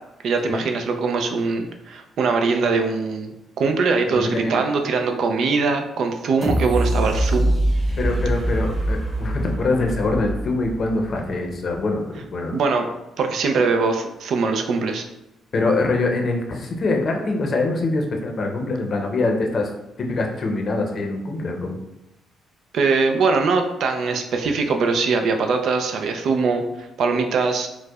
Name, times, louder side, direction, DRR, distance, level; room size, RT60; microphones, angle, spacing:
voice 1, 0.2-3.3 3.6-7.5 12.5-12.9 13.2-15.0 22.7-27.7, right 4 dB, 70° right, 5 dB, 0.4 m, -22 dB
voice 2, 4.1-4.6 8.0-12.5 15.5-19.7 20.0-21.8, left 2 dB, 50° left, 2 dB, 0.6 m, -24 dB
sound 1, 6.4-11.3 11.7-11.8, right 1 dB, 20° right, 1.2 m, -23 dB
4.5 x 2.1 x 2.3 m, 0.91 s
cardioid pair, 90°, 0 cm